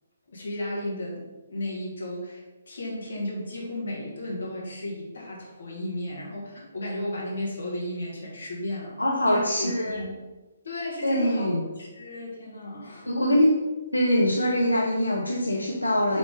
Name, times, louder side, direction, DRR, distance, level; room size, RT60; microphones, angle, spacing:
voice 1, 0.3-9.0 9.2-10.1 10.6-11.5 11.8-13.4, left 1 dB, 60° left, -3 dB, 2.2 m, -34 dB
voice 2, 9.0-10.0 11.0-11.6 13.1-13.6 13.9-16.2, left 1 dB, 85° left, -2 dB, 0.8 m, -23 dB
5.9 x 3.8 x 5.1 m, 1.2 s
figure-of-eight pair, 135°, 0 cm